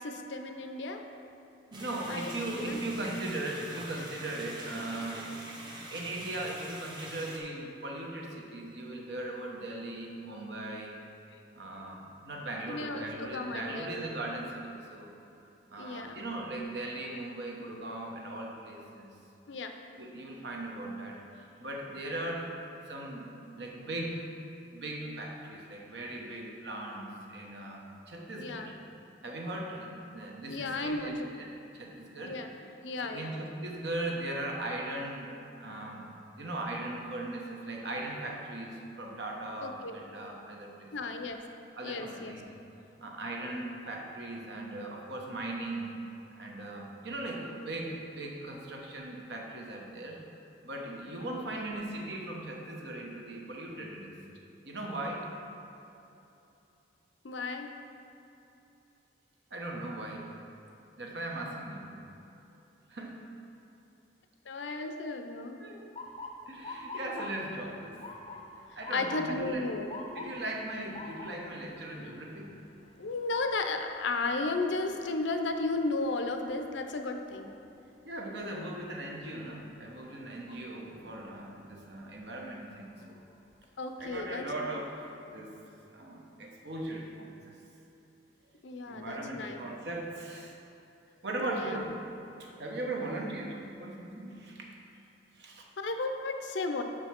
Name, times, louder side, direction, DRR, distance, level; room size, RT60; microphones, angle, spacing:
voice 1, 0.0-1.0 2.1-2.8 12.7-14.0 15.8-16.3 19.5-19.7 28.4-28.7 30.5-31.5 32.2-32.5 32.8-33.4 39.6-40.0 40.9-41.4 41.8-42.3 57.2-57.7 64.5-65.6 68.9-70.0 73.0-77.5 83.8-84.8 88.6-89.6 91.4-91.8 95.8-96.8, left 3 dB, 80° left, 5 dB, 0.6 m, -34 dB
sound 1, 1.7-7.4, right 1 dB, 25° right, 0.9 m, -44 dB
voice 2, 1.7-5.4 5.7-10.9 11.5-15.1 15.7-19.1 20.0-22.5 22.9-24.3 24.7-28.7 29.2-31.5 31.7-32.4 33.0-36.0 36.4-40.9 41.8-42.5 43.0-46.0 46.4-50.2 50.6-54.1 54.6-55.3 59.5-60.3 61.0-61.9 62.9-63.2 65.6-65.8 66.5-68.0 68.8-69.6 70.1-72.5 78.0-83.2 84.0-85.6 85.9-87.6 88.9-90.6 91.2-91.9 92.4-94.6 95.3-95.6, right 1 dB, 65° right, 0 dB, 1.1 m, -39 dB
Motor vehicle (road) / Siren, 66.0-77.9 78.3-78.7 79.5-79.8 81.7-81.9 82.5-82.6 83.0-83.7, left 2 dB, 30° left, 0.6 m, -47 dB
6.2 x 5.1 x 5.9 m, 2.9 s
head